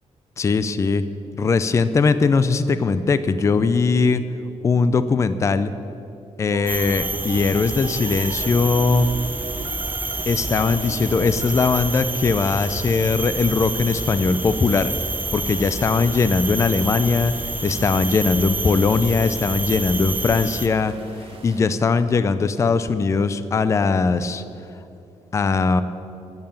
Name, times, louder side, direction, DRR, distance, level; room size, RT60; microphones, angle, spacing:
voice 1, 0.4-1.0 1.4-4.2 4.6-5.7 6.4-9.1 10.3-14.9 15.3-17.3 17.6-20.9 21.4-24.4 25.3-25.8, left 4 dB, 25° left, 12 dB, 0.4 m, -20 dB
sound 1, 6.5-11.8, right 6 dB, 80° right, 0.9 m, -38 dB
sound 2, 6.7-20.7, right 2 dB, 15° right, 0.7 m, -29 dB
sound 3, 7.3-21.6, right 3 dB, 45° right, 1.7 m, -46 dB
11.0 x 8.9 x 8.9 m, 2.7 s
wide cardioid pair, 170°, 12 cm